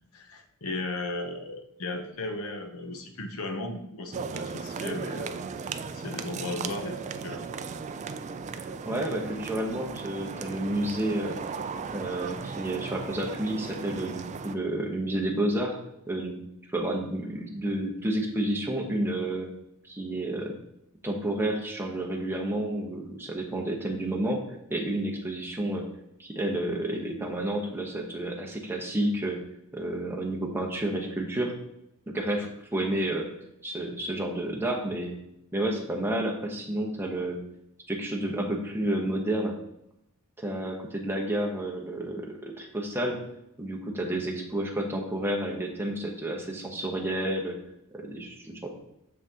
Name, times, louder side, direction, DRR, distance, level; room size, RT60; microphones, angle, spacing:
voice 1, 0.1-7.5, left 2 dB, 70° left, 5 dB, 0.9 m, -36 dB
sound 1, 4.1-14.6, right 5 dB, 30° right, 0.3 m, -36 dB
voice 2, 8.8-11.4 11.9-15.8 16.1-16.4 16.7-19.5 19.9-20.5 21.0-24.4 24.7-25.8 26.2-29.4 29.7-31.5 32.1-33.3 33.6-35.2 35.5-37.4 37.9-39.5 40.4-43.2 43.6-47.6 47.9-48.7, right 1 dB, 10° right, 0 dB, 0.9 m, -30 dB
7.4 x 5.7 x 2.8 m, 0.82 s
head